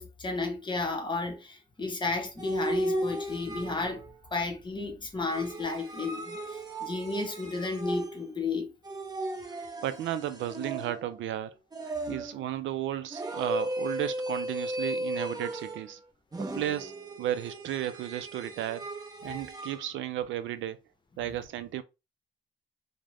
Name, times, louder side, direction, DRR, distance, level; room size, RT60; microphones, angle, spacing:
voice 1, 0.0-4.0 4.3-8.7, left 3 dB, 25° left, 0.8 m, -33 dB
sound 1, 2.4-4.1 5.3-8.4 8.8-11.2 11.7-12.4 13.1-15.9 16.3-19.8, right 1 dB, 20° right, 0.7 m, -36 dB
voice 2, 9.8-11.5 11.8-16.0 16.4-16.9 17.2-18.9 19.2-20.8 21.2-21.8, right 12 dB, 75° right, 0.4 m, -34 dB
2.4 x 2.1 x 3.2 m
cardioid pair, 90°, 20 cm